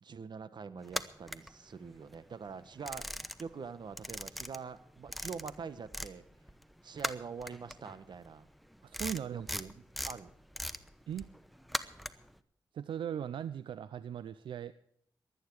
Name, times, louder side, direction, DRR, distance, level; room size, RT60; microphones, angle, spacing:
voice 1, 0.0-6.2 6.8-8.5 9.3-10.3, right 5 dB, 65° right, 13 dB, 1.2 m, -45 dB
sound 1, 0.8-2.2 2.5-3.7 3.9-6.2 6.4-12.4, equal, ahead, 1.0 m, -40 dB
voice 2, 8.8-9.5 11.1-11.3 12.7-14.7, right 9 dB, 85° right, 14 dB, 0.5 m, -38 dB
23.5 x 9.4 x 4.7 m, 0.66 s
cardioid pair, 60°, 8 cm